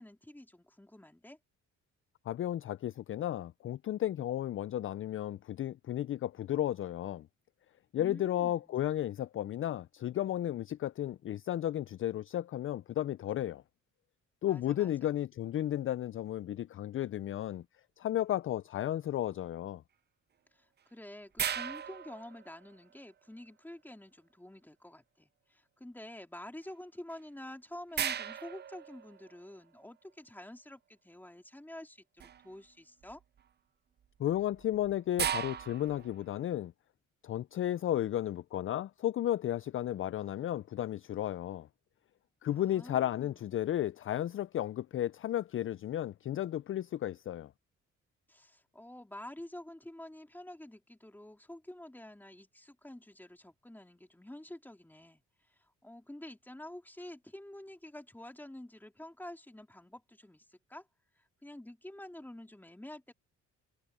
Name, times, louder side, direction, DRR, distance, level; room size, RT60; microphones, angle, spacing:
voice 1, 0.0-1.4 7.9-8.8 14.5-14.9 20.5-33.2 42.5-43.6 48.3-55.2 55.8-60.9 61.4-63.1, left 1 dB, 5° left, 2.9 m, -49 dB
voice 2, 2.3-7.3 7.9-13.6 14.4-17.6 18.0-19.8 34.2-36.7 37.2-41.7 42.4-47.5, left 12 dB, 45° left, 0.4 m, -33 dB
sound 1, 21.4-22.9 27.1-27.2 28.0-29.6 32.2-32.6 33.0-33.4 34.3-36.3, right 8 dB, 35° right, 0.5 m, -37 dB
cardioid pair, 90°, 30 cm